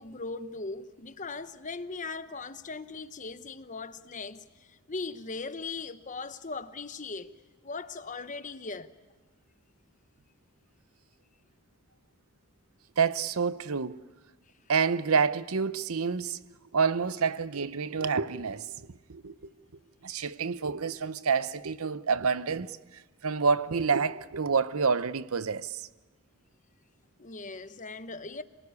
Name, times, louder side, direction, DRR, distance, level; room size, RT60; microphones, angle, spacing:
voice 1, 0.0-7.3 7.6-8.9 27.2-28.4, left 3 dB, 35° left, 1.0 m, -39 dB
voice 2, 13.0-14.0 14.7-16.4 16.7-18.7 19.1-19.3 20.0-22.8 23.2-25.9, right 5 dB, 75° right, 0.8 m, -28 dB
27.0 x 19.0 x 9.7 m
head